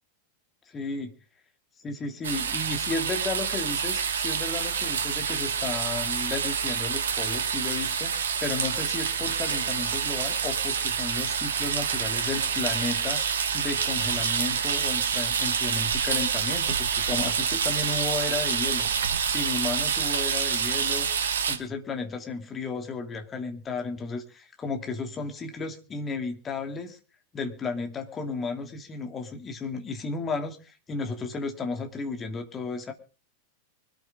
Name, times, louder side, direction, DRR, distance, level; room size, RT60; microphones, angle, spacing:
voice 1, 0.7-1.1 1.8-8.1 8.4-18.9 19.3-21.1 21.5-27.0 27.3-32.9, left 4 dB, 20° left, 4 dB, 2.7 m, -33 dB
sound 1, 2.2-21.6, right 7 dB, 65° right, 1.5 m, -27 dB
24.5 x 9.1 x 3.7 m, 0.35 s
figure-of-eight pair, 90°, 0 cm